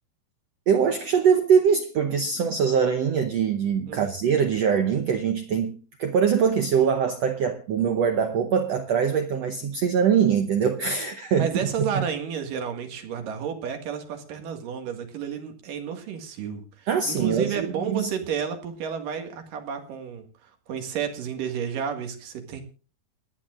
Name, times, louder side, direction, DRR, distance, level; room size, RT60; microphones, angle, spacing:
voice 1, 0.7-11.5 11.9-12.0 16.9-18.1, right 7 dB, 90° right, 1.4 m, -23 dB
voice 2, 11.3-22.6, right 7 dB, 65° right, 3.3 m, -31 dB
28.5 x 10.0 x 2.5 m
omnidirectional pair, 4.3 m